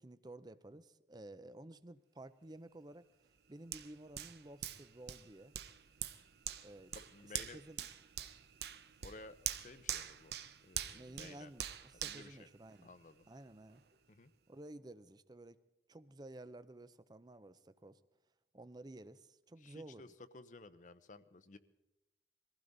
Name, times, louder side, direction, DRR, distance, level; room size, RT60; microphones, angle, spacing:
voice 1, 0.0-3.1 3.5-5.5 6.6-6.9 7.5-7.9 10.9-12.9 13.3-13.8 14.5-15.6 15.9-18.0 18.5-20.0, right 1 dB, 25° right, 14 dB, 0.6 m, -53 dB
Hands, 3.7-13.2 13.7-13.8, right 10 dB, 65° right, 0.7 m, -45 dB
voice 2, 6.9-7.6 9.0-10.3 10.6-11.5 12.0-12.5 12.8-13.3 14.1-14.3 19.6-21.6, left 3 dB, 45° left, 13 dB, 0.7 m, -55 dB
22.0 x 15.5 x 4.0 m, 0.95 s
head